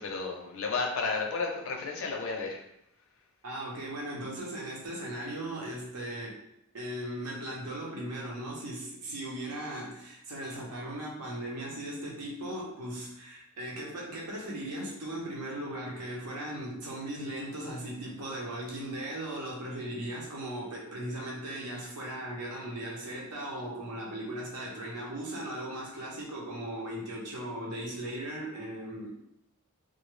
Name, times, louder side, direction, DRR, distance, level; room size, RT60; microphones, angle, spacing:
voice 1, 0.0-2.6, left 4 dB, 60° left, 1 dB, 0.5 m, -32 dB
voice 2, 3.4-6.4 6.7-29.1, right 1 dB, 90° right, -3 dB, 0.8 m, -38 dB
2.2 x 2.0 x 3.1 m, 0.78 s
head